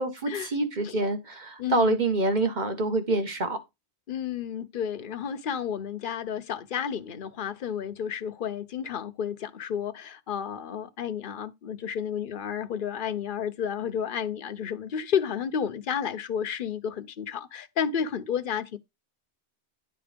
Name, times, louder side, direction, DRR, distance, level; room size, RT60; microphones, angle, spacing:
voice 1, 0.0-3.6, right 2 dB, 40° right, 1.6 m, -26 dB
voice 2, 1.6-2.0 4.1-18.8, left 8 dB, 55° left, 0.9 m, -31 dB
9.8 x 4.1 x 5.1 m
omnidirectional pair, 1.1 m